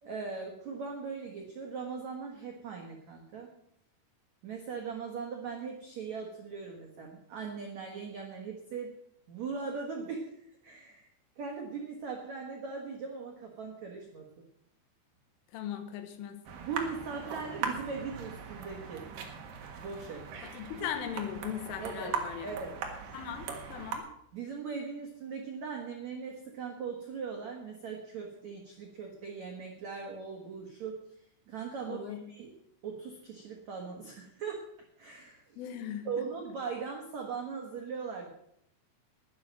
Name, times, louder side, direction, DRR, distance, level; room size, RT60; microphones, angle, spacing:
voice 1, 0.0-3.5 4.4-8.9 9.3-11.1 11.4-14.3 16.6-19.0 19.8-20.3 21.8-22.2 22.4-22.8 24.3-31.0 31.5-32.5 32.8-34.6 35.0-35.6 36.0-38.3, right 5 dB, 90° right, 1 dB, 1.5 m, -39 dB
voice 2, 15.5-16.4 20.4-22.6 23.1-24.1 31.9-32.2 35.6-36.1, left 9 dB, 85° left, 7 dB, 3.8 m, -38 dB
sound 1, 16.4-24.0, right 6 dB, 60° right, 2.7 m, -40 dB
12.0 x 10.5 x 6.3 m, 0.77 s
omnidirectional pair, 5.7 m